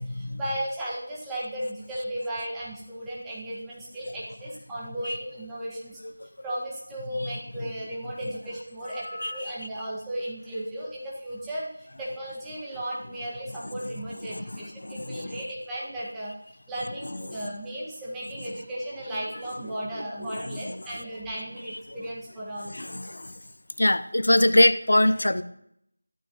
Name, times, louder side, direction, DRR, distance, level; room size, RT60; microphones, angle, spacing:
voice 1, 0.0-6.0 6.4-9.1 9.3-16.3 16.7-22.7, right 1 dB, 5° right, -7 dB, 1.7 m, -35 dB
voice 2, 7.2-7.7 8.9-9.7 13.6-13.7 14.3-15.4 17.0-17.5 19.6-21.0 21.7-22.0 22.6-23.3 23.8-25.4, left 1 dB, 80° left, 13 dB, 0.7 m, -26 dB
14.5 x 13.0 x 3.1 m, 0.74 s
figure-of-eight pair, 175°, 0 cm